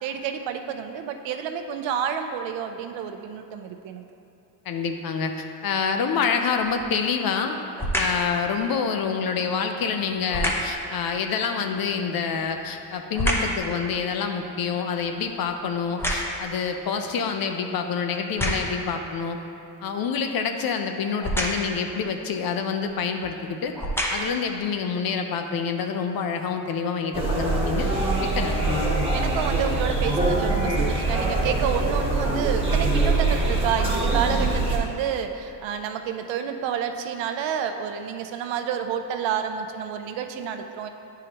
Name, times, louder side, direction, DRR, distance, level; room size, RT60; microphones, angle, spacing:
voice 1, 0.0-4.0 29.1-40.9, right 8 dB, 75° right, 7 dB, 0.6 m, -29 dB
voice 2, 4.7-7.6 8.0-19.4 19.8-23.7 24.1-27.9 28.2-29.0, left 6 dB, 50° left, 5 dB, 0.6 m, -27 dB
sound 1, 6.6-7.0 7.8-8.3 10.3-10.8 12.2-13.6 14.1-16.6 17.3-17.4 18.1-18.9 21.2-21.8 22.8-23.0 23.6-24.5 25.1-25.2, equal, 5° left, 0.7 m, -28 dB
sound 2, 27.1-34.8, right 2 dB, 10° right, 1.2 m, -23 dB
9.6 x 4.9 x 2.9 m, 2.8 s
cardioid pair, 125°, 45 cm